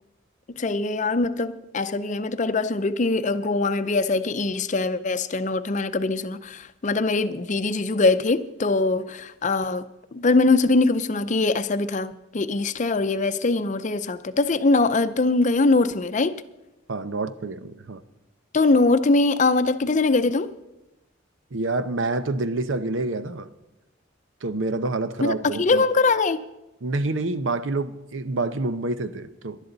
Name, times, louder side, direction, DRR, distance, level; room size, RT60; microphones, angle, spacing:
voice 1, 0.6-16.4 18.5-20.5 25.2-26.5, left 3 dB, 40° left, 0.6 m, -22 dB
voice 2, 16.9-18.0 21.5-23.5 24.4-25.8 26.8-29.6, right 2 dB, 90° right, 0.8 m, -27 dB
19.5 x 11.5 x 4.0 m
head